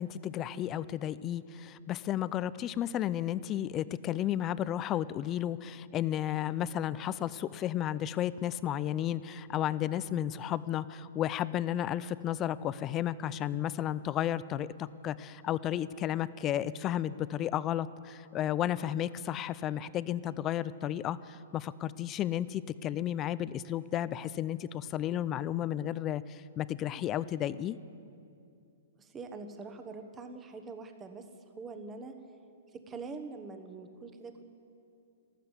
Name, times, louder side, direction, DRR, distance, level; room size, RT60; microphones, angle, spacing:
voice 1, 0.0-27.8, left 11 dB, 25° left, 17 dB, 0.4 m, -33 dB
voice 2, 29.0-31.3 31.5-32.1 32.7-34.4, right 4 dB, 15° right, 7 dB, 1.2 m, -44 dB
13.5 x 12.5 x 8.2 m, 2.6 s
hypercardioid pair, 145°, 0 cm